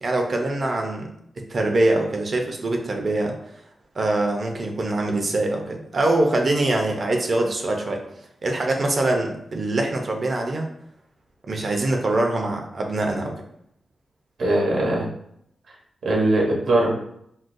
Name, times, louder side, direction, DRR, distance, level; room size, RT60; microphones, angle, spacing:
voice 1, 0.0-3.4 4.0-8.0 8.4-10.7 11.5-13.3, right 2 dB, 50° right, 2 dB, 0.6 m, -23 dB
voice 2, 14.4-15.1 16.0-16.9, right 1 dB, 75° right, -2 dB, 1.0 m, -20 dB
3.7 x 2.3 x 2.6 m, 0.74 s
cardioid pair, 90°, 0 cm